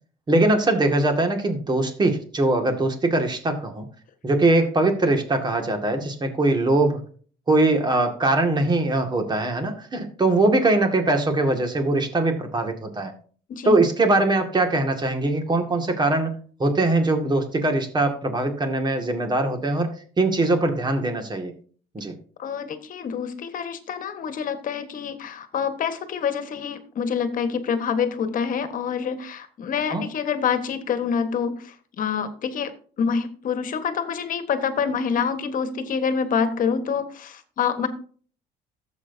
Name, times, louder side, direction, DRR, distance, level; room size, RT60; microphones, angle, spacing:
voice 1, 0.3-3.9 4.2-7.0 7.5-13.1 13.7-16.3 16.6-19.9 20.2-21.5 21.9-22.1 29.9-30.1, right 2 dB, 25° right, 5 dB, 2.1 m, -21 dB
voice 2, 22.4-32.7 33.0-37.9, left 6 dB, 55° left, 9 dB, 1.4 m, -26 dB
13.0 x 7.7 x 2.7 m, 0.43 s
cardioid pair, 110°, 17 cm